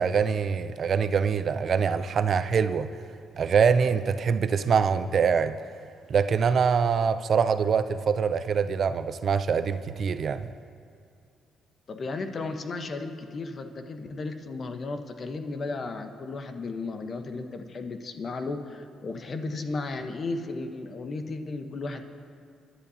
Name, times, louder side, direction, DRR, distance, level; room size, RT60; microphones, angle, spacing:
voice 1, 0.0-2.9 3.3-5.6 6.1-10.4, right 6 dB, 55° right, 0.4 m, -24 dB
voice 2, 11.9-22.0, left 3 dB, 45° left, 1.1 m, -34 dB
24.5 x 11.5 x 2.8 m
cardioid pair, 90°, 0 cm